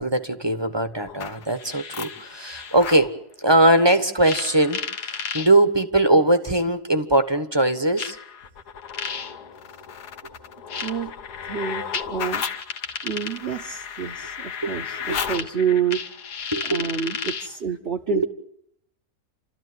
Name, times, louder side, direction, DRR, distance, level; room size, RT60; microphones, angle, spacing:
voice 1, 0.0-3.1 3.4-8.2 14.6-14.7 15.1-15.2 16.5-16.8 18.1-18.2, right 1 dB, 20° right, 1.1 m, -20 dB
sound 1, 1.1-3.1 4.2-5.5 6.6-6.7 8.0-17.6, left 6 dB, 85° left, 1.8 m, -33 dB
voice 2, 10.8-11.1 11.5-12.4 13.0-16.1 16.7-18.2, right 7 dB, 45° right, 1.2 m, -28 dB
30.0 x 13.5 x 9.6 m
omnidirectional pair, 1.7 m